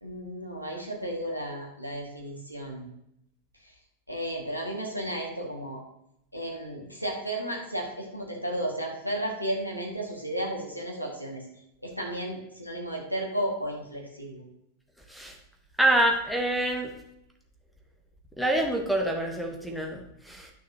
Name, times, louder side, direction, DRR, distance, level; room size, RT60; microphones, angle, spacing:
voice 1, 0.0-2.9 4.1-5.8 6.3-11.4 11.8-14.4, right 1 dB, 90° left, -1 dB, 1.9 m, -33 dB
voice 2, 15.8-16.9 18.4-20.5, right 1 dB, ahead, 1 dB, 1.3 m, -26 dB
11.5 x 6.3 x 2.9 m, 0.78 s
figure-of-eight pair, 90°, 0 cm